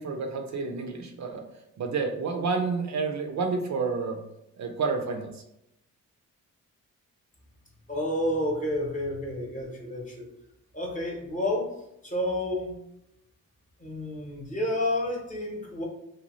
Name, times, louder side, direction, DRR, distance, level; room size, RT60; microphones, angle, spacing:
voice 1, 0.0-1.4 1.8-4.2 4.6-5.4, right 4 dB, 55° right, 3 dB, 0.5 m, -29 dB
voice 2, 7.9-10.3 10.7-11.7 12.0-12.7 13.8-15.8, left 1 dB, 25° left, -1 dB, 0.8 m, -30 dB
2.7 x 2.3 x 2.9 m, 0.82 s
cardioid pair, 70°, 33 cm